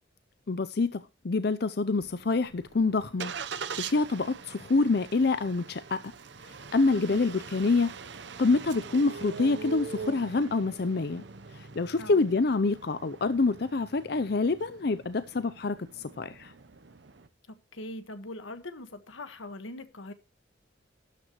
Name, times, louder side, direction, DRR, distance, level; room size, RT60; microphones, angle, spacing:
voice 1, 0.5-3.3 3.8-6.0 6.7-7.9 8.4-11.2 11.8-15.8 16.2-16.5, left 3 dB, 55° left, 0.5 m, -26 dB
Engine starting, 2.0-17.3, right 5 dB, 60° right, 0.9 m, -43 dB
voice 2, 6.9-7.3 12.0-12.2 17.5-20.1, left 1 dB, 85° left, 1.5 m, -41 dB
13.0 x 11.5 x 3.1 m
head